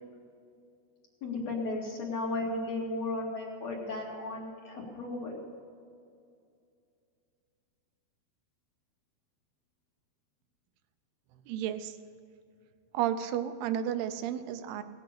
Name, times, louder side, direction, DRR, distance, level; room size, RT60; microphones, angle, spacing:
voice 1, 1.2-5.4, left 2 dB, 50° left, -2 dB, 3.0 m, -35 dB
voice 2, 11.5-12.0 12.9-14.8, right 10 dB, 85° right, 9 dB, 2.7 m, -32 dB
18.5 x 8.5 x 6.7 m, 2.5 s
omnidirectional pair, 4.5 m